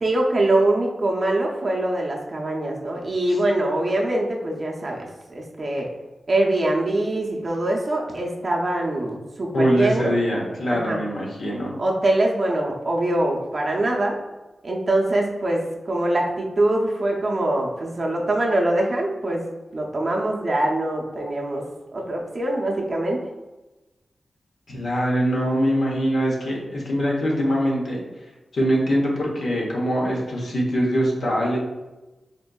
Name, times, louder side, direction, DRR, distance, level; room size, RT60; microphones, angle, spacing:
voice 1, 0.0-5.9 6.3-10.2 10.7-11.0 11.8-14.2 14.6-19.4 19.7-21.6 21.9-23.2, right 1 dB, 40° right, -1 dB, 0.6 m, -23 dB
voice 2, 9.5-11.8 24.7-28.0 28.5-31.6, equal, 65° left, -3 dB, 0.9 m, -23 dB
4.3 x 2.6 x 2.2 m, 1.1 s
wide cardioid pair, 140°, 0 cm